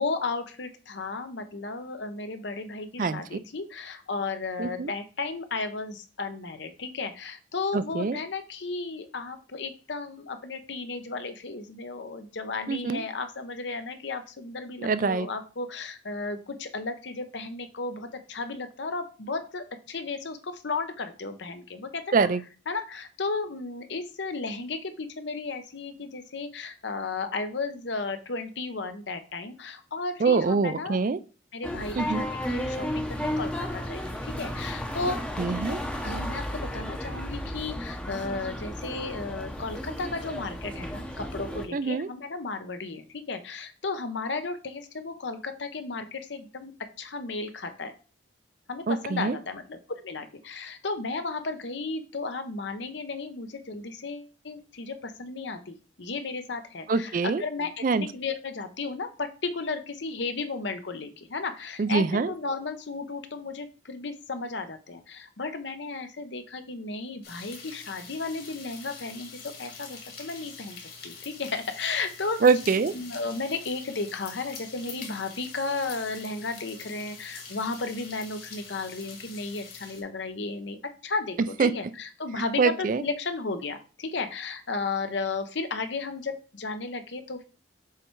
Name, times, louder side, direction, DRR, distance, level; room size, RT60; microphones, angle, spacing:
voice 1, 0.0-22.3 22.7-31.0 31.5-34.0 34.4-35.2 36.0-46.7 47.0-47.9 48.7-70.8 71.0-72.5 72.9-87.4, left 3 dB, 65° left, 8 dB, 0.8 m, -34 dB
voice 2, 3.0-3.4 4.6-4.9 7.7-8.2 12.7-13.0 14.8-15.3 22.1-22.4 30.2-31.2 32.0-32.2 35.4-35.8 41.7-42.1 48.9-49.4 56.9-57.4 57.8-58.1 61.8-62.3 72.4-72.9 81.6-81.7 82.6-83.0, right 4 dB, 45° right, 14 dB, 0.4 m, -24 dB
sound 1, 31.6-41.7, equal, 5° left, 0.7 m, -33 dB
sound 2, 67.2-80.0, left 5 dB, 50° left, 1.9 m, -45 dB
6.9 x 3.4 x 4.6 m, 0.36 s
head